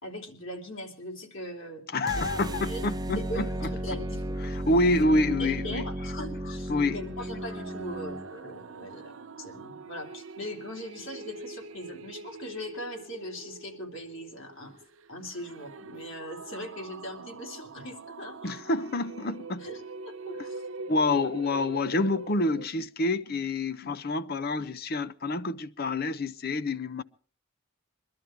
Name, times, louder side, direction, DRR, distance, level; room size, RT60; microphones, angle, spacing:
voice 1, 0.0-1.8 2.2-2.8 3.2-4.6 5.0-5.1 5.4-14.8 15.1-18.5 19.6-20.6 23.3-23.4 23.8-23.9, equal, 60° left, 3.5 m, -40 dB
voice 2, 1.9-3.5 4.4-5.9 6.7-7.0 18.4-19.6 20.9-27.0, left 2 dB, 45° left, 0.7 m, -27 dB
sound 1, 2.0-8.3, right 1 dB, 15° right, 0.9 m, -34 dB
sound 2, 6.6-22.7, right 3 dB, 65° right, 0.7 m, -44 dB
23.0 x 12.5 x 4.6 m
head